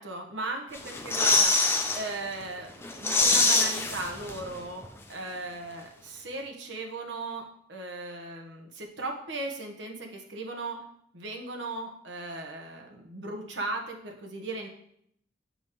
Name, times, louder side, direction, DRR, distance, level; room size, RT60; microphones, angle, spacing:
voice 1, 0.0-1.5 1.9-7.4 7.7-10.8 11.1-14.7, right 2 dB, 80° right, 2 dB, 1.1 m, -37 dB
sound 1, 0.7-2.0 2.4-2.5 2.8-4.6 4.8-4.9, left 3 dB, 15° left, 0.6 m, -24 dB
7.7 x 5.3 x 3.1 m, 0.71 s
head